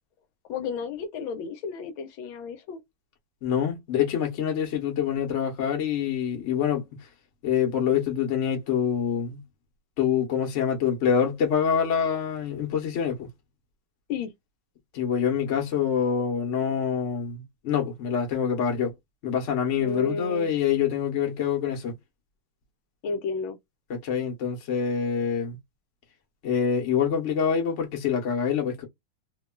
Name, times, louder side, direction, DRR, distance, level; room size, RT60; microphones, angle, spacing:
voice 1, 0.5-2.8 14.1-14.3 19.8-20.5 23.0-23.6, left 4 dB, 75° left, 1.3 m, -32 dB
voice 2, 3.4-6.9 7.4-9.4 10.0-13.3 14.9-18.9 19.2-21.9 23.9-25.6 26.4-28.9, left 7 dB, 50° left, 0.9 m, -26 dB
3.4 x 2.3 x 2.2 m
omnidirectional pair, 2.4 m